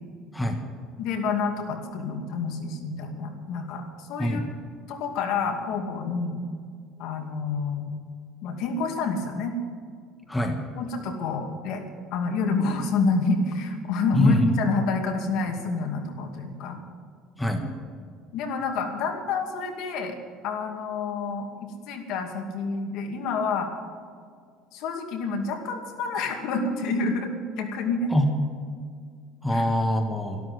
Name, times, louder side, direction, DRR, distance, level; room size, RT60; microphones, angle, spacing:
voice 1, 1.0-4.4 4.9-6.4 7.0-7.9 8.4-9.5 10.8-11.9 12.1-16.8 18.3-20.2 20.4-23.7 24.7-28.1 29.5-29.6, left 4 dB, 65° left, 4 dB, 2.5 m, -28 dB
voice 2, 14.1-14.5 17.4-17.7 28.1-28.3 29.4-30.4, left 1 dB, 5° left, 3 dB, 1.4 m, -23 dB
13.0 x 12.5 x 8.0 m, 2.1 s
cardioid pair, 150°, 0 cm